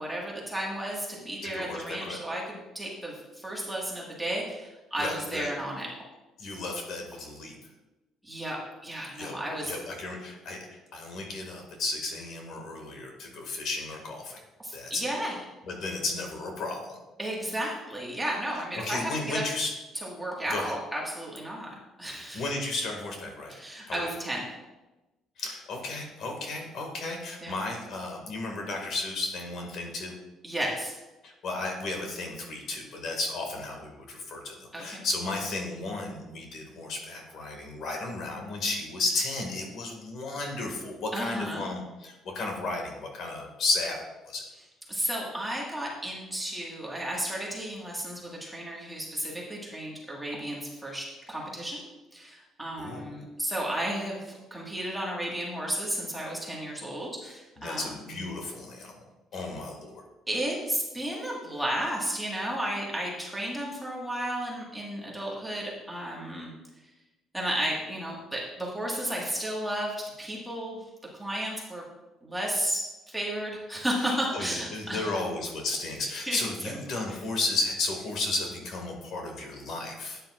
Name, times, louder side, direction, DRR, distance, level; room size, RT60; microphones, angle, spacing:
voice 1, 0.0-5.9 8.2-9.7 14.6-15.4 17.2-19.4 19.9-22.5 23.5-24.4 27.4-27.5 30.4-30.9 34.7-35.0 41.1-41.6 44.9-51.8 52.1-58.3 59.4-59.5 60.3-66.5 67.3-70.8 71.1-71.8 72.2-75.1 76.2-76.4 76.6-76.7, right 1 dB, 5° right, -4 dB, 1.7 m, -33 dB
voice 2, 1.4-2.2 5.0-5.5 6.4-7.6 9.2-9.4 9.6-14.4 14.7-15.1 15.7-17.0 18.8-19.7 20.5-20.7 22.3-23.5 23.9-24.1 25.4-30.2 31.2-44.4 52.8-53.1 57.6-58.9 59.3-60.0 74.3-80.2, left 2 dB, 50° left, 2 dB, 2.0 m, -33 dB
12.5 x 9.1 x 2.5 m, 1.1 s
cardioid pair, 170°, 0 cm